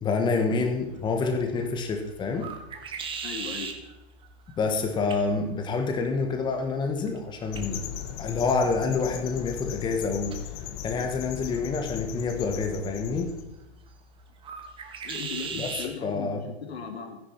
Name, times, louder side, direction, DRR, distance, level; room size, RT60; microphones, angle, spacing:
voice 1, 0.0-2.5 4.6-7.8 8.2-10.4 10.8-13.3 15.6-15.7 16.0-16.4, left 4 dB, 15° left, 4 dB, 1.3 m, -27 dB
sound 1, 0.6-16.0, right 5 dB, 15° right, 1.5 m, -42 dB
voice 2, 3.2-3.8 15.0-17.2, left 5 dB, 75° left, 4 dB, 2.9 m, -37 dB
sound 2, 7.5-13.4, left 10 dB, 30° left, 1.2 m, -38 dB
13.0 x 10.5 x 5.9 m, 0.98 s
hypercardioid pair, 135°, 32 cm